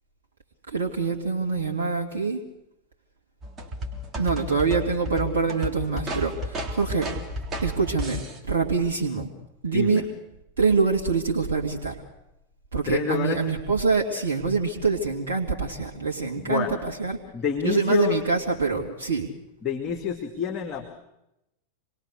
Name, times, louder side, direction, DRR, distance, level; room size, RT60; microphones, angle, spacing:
voice 1, 0.7-2.4 4.2-7.1 7.6-8.2 8.5-9.3 9.6-10.0 10.6-12.0 12.7-17.2 17.6-19.3, right 4 dB, 65° right, 1 dB, 2.5 m, -25 dB
sound 1, 3.4-8.4, equal, 20° right, 3.6 m, -33 dB
voice 2, 9.7-10.0 12.9-13.4 16.4-16.8 17.3-18.2 19.6-20.9, left 8 dB, 30° left, 5 dB, 2.3 m, -28 dB
26.5 x 21.5 x 6.7 m, 0.88 s
figure-of-eight pair, 90°, 0 cm